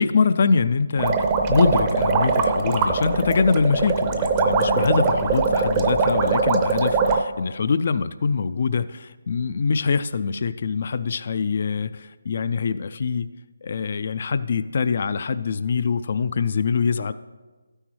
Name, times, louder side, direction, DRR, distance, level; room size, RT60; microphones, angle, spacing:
voice 1, 0.0-13.3 13.6-17.1, left 5 dB, 50° left, 13 dB, 0.3 m, -24 dB
sound 1, 1.0-7.2, right 4 dB, 20° right, 0.6 m, -21 dB
12.5 x 9.7 x 3.2 m, 1.3 s
figure-of-eight pair, 155°, 0 cm